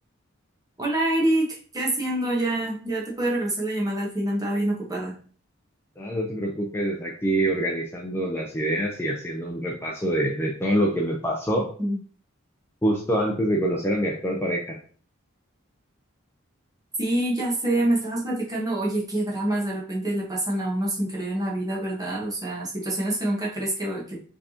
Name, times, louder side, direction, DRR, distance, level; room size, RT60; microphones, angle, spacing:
voice 1, 0.8-5.1 11.8-12.0 17.0-24.2, right 1 dB, 20° right, -3 dB, 1.2 m, -26 dB
voice 2, 6.0-11.7 12.8-14.8, right 1 dB, 10° left, -1 dB, 0.5 m, -25 dB
5.2 x 3.5 x 2.8 m, 0.43 s
head